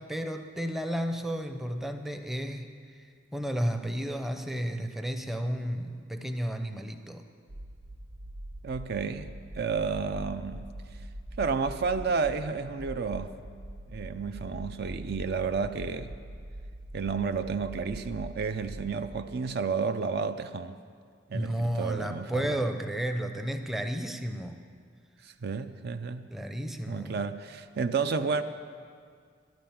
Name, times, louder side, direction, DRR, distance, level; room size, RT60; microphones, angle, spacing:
voice 1, 0.0-7.2 21.3-24.6 26.3-27.2, equal, ahead, 6 dB, 0.6 m, -32 dB
sound 1, 7.5-19.2, right 1 dB, 80° right, 0.9 m, -43 dB
voice 2, 8.6-9.3 9.6-10.7 11.4-13.3 13.9-16.1 16.9-20.8 21.3-22.6 25.2-26.3 26.9-28.4, right 5 dB, 55° right, 10 dB, 0.5 m, -31 dB
12.0 x 9.2 x 8.6 m, 2.1 s
head